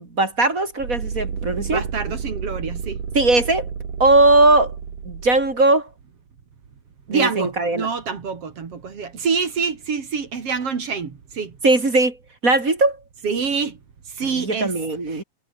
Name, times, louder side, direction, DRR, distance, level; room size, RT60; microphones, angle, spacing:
voice 1, 0.0-1.8 3.1-3.7 4.0-4.7 5.0-5.9 7.1-7.9 11.6-12.2 12.4-13.0 14.4-15.2, right 2 dB, 25° right, 3.3 m, -18 dB
sound 1, 0.8-5.7, right 6 dB, 60° right, 5.0 m, -31 dB
voice 2, 1.7-3.0 7.1-11.5 13.2-13.8 14.1-14.8 15.1-15.2, right 5 dB, 45° right, 3.3 m, -26 dB
omnidirectional pair, 4.2 m